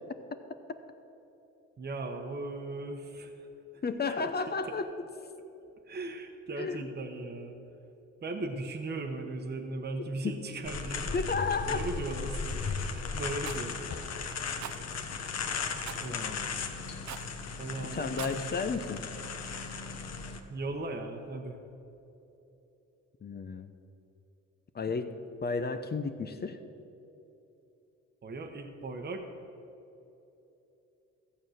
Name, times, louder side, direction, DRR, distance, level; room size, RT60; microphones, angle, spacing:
voice 1, 1.8-3.5 3.7-3.8 4.2-4.3 5.9-7.6 8.2-11.1 11.6-13.8 14.4-14.7 15.9-16.5 17.6-18.5 20.5-21.6 28.2-29.2, right 2 dB, 35° right, 3 dB, 1.1 m, -38 dB
voice 2, 3.8-5.1 6.6-6.9 11.1-11.9 16.1-16.6 17.9-19.0 23.2-23.7 24.7-26.6, left 4 dB, 35° left, 9 dB, 0.7 m, -33 dB
sound 1, 10.6-20.4, left 5 dB, 55° left, 1.2 m, -36 dB
Rattle, 13.4-13.6 14.6-14.8 15.8-16.1 17.0-17.3 18.0-18.4, right 10 dB, 70° right, 0.8 m, -41 dB
14.5 x 7.4 x 6.4 m, 3.0 s
cardioid pair, 90°, 30 cm